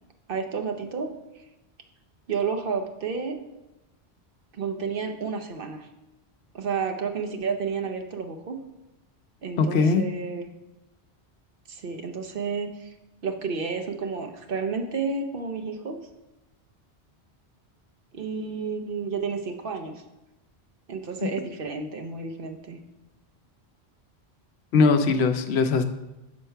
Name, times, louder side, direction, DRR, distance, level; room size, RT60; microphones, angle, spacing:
voice 1, 0.3-1.1 2.3-3.4 4.5-5.9 6.5-8.6 9.4-10.5 11.7-12.9 13.2-16.0 18.1-20.0 20.9-22.8, right 5 dB, 60° right, 6 dB, 0.9 m, -31 dB
voice 2, 9.6-10.0 24.7-25.8, left 4 dB, 75° left, 8 dB, 0.9 m, -20 dB
6.5 x 4.5 x 5.6 m, 0.98 s
omnidirectional pair, 1.1 m